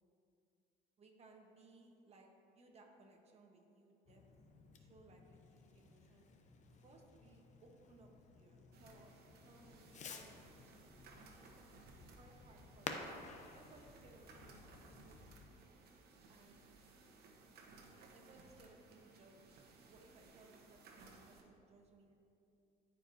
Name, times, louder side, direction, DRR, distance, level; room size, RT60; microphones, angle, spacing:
voice 1, 1.0-4.2 4.8-6.3 6.8-11.5 12.2-13.1 13.5-15.2 16.3-16.7 18.0-19.5 19.9-22.1, right 2 dB, 40° right, 1 dB, 1.1 m, -64 dB
Fireworks, 4.1-15.4, left 4 dB, 45° left, 0.7 m, -54 dB
sound 1, 8.7-21.4, right 3 dB, 70° right, 1.0 m, -61 dB
13.5 x 4.8 x 2.7 m, 2.6 s
cardioid pair, 110°, 17 cm